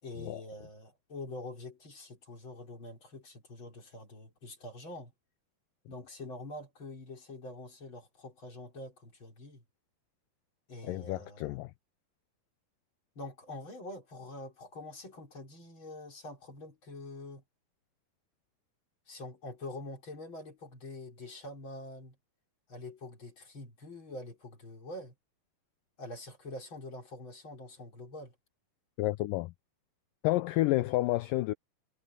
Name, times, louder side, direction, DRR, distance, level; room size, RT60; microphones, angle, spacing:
voice 1, 0.0-5.1 5.9-9.6 10.7-11.6 13.1-17.4 19.1-22.2 22.7-25.1 26.0-28.3, left 2 dB, 30° left, 4.9 m, -45 dB
voice 2, 10.8-11.7 29.0-29.5 30.2-31.5, left 18 dB, 85° left, 1.9 m, -30 dB
omnidirectional pair, 4.5 m